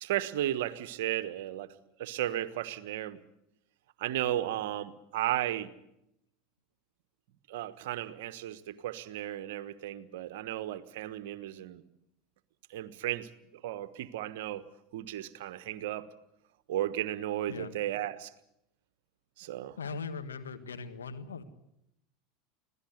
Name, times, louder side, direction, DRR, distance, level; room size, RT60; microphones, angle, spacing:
voice 1, 0.0-1.7 2.0-3.2 4.0-5.7 7.5-11.8 12.7-14.6 14.9-16.1 16.7-18.3 19.4-19.8, right 13 dB, 65° right, 13 dB, 1.2 m, -34 dB
voice 2, 19.8-21.4, left 5 dB, 80° left, 8 dB, 1.6 m, -39 dB
25.0 x 17.0 x 8.1 m, 0.83 s
hypercardioid pair, 80°, 0 cm